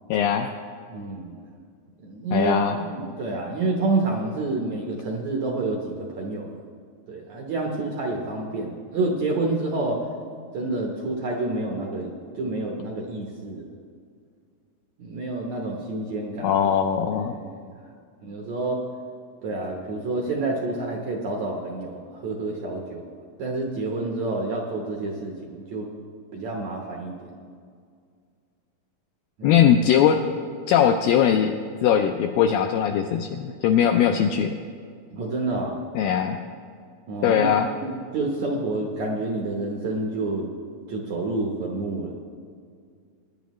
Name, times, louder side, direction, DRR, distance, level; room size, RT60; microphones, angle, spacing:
voice 1, 0.1-0.5 2.3-2.7 16.4-17.4 29.4-30.2 30.7-31.6 31.8-34.6 36.0-36.4 37.2-37.7, left 8 dB, 85° left, 5 dB, 2.0 m, -20 dB
voice 2, 0.9-1.4 2.0-6.5 7.1-10.0 10.5-13.6 15.0-16.5 17.1-17.7 18.2-18.8 19.4-23.1 23.4-25.9 26.3-27.4 29.4-29.6 35.1-35.8 37.1-37.5 37.8-40.5 40.9-42.1, right 2 dB, 70° right, 0 dB, 1.8 m, -28 dB
20.0 x 10.0 x 3.1 m, 2.2 s
omnidirectional pair, 4.5 m